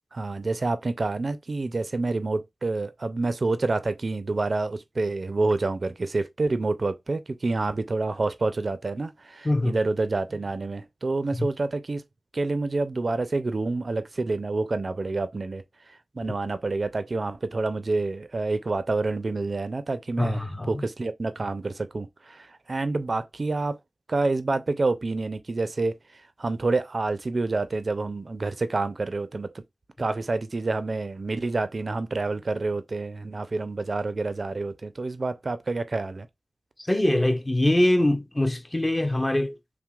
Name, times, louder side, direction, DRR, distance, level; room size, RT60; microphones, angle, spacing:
voice 1, 0.1-12.0 12.3-15.6 16.1-23.8 24.1-25.9 26.4-29.6 30.0-36.3, right 3 dB, 50° right, 0.4 m, -28 dB
voice 2, 9.4-9.8 11.3-11.5 20.2-20.8 36.8-39.5, left 1 dB, 20° left, 0.5 m, -23 dB
5.7 x 2.0 x 2.3 m
wide cardioid pair, 70°, 0 cm